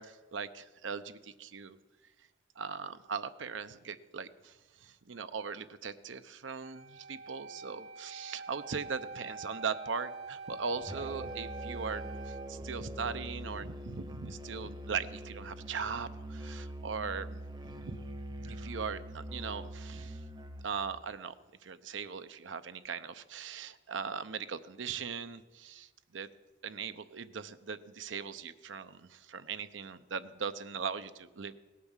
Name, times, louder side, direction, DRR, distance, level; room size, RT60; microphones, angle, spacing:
voice 1, 0.0-1.8 2.6-4.5 4.8-17.4 17.6-18.0 18.4-20.2 20.6-21.3 21.6-26.3 26.6-31.6, right 5 dB, 90° right, 11 dB, 0.7 m, -39 dB
Wind instrument woodwind instrument, 6.6-12.5, right 4 dB, 75° right, 1.6 m, -45 dB
Musical instrument, 10.9-20.7, equal, 20° right, 0.8 m, -43 dB
17.5 x 8.5 x 7.2 m, 1.2 s
head